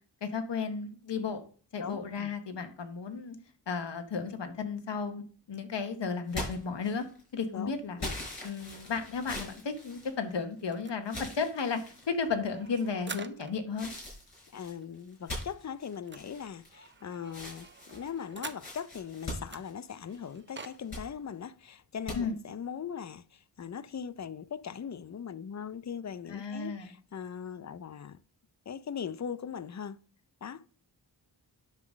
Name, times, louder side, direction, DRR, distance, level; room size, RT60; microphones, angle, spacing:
voice 1, 0.2-1.4 1.7-3.4 3.7-5.2 5.5-7.0 7.3-8.0 8.4-13.9 22.1-22.3 26.3-26.9, left 5 dB, 75° left, 1.3 m, -34 dB
voice 2, 1.8-2.3 7.5-8.2 14.5-28.2 28.7-30.0 30.4-30.7, left 7 dB, 40° left, 0.5 m, -40 dB
sound 1, 6.3-7.3 8.0-10.6 11.0-12.1 12.7-13.2 13.8-16.9 17.3-20.3 20.7-21.1 22.1-22.2, left 1 dB, 55° left, 5.5 m, -42 dB
sound 2, 10.7-13.7 14.1-14.2 14.4-14.6 14.8-19.0 19.4-20.8, right 4 dB, 25° right, 0.7 m, -48 dB
10.5 x 4.0 x 6.3 m
wide cardioid pair, 75°, 43 cm